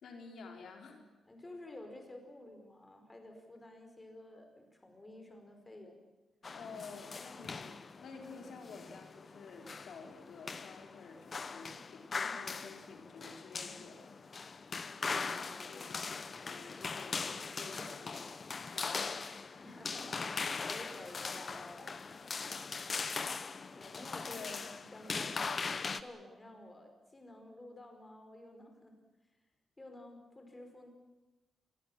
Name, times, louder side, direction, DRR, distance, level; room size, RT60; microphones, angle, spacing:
voice 1, 0.0-1.0 6.5-14.2 15.6-18.3 18.7-19.6 23.8-23.9 24.3-24.7, left 4 dB, 70° left, 3 dB, 3.8 m, -51 dB
voice 2, 1.3-6.0 7.3-7.6 15.0-15.9 17.2-18.1 19.6-23.0 23.7-28.9 29.8-30.9, left 1 dB, 15° left, 4 dB, 5.0 m, -52 dB
sound 1, 6.4-26.0, left 4 dB, 35° left, 1.1 m, -41 dB
26.0 x 22.0 x 7.4 m, 1.1 s
wide cardioid pair, 135°, 0 cm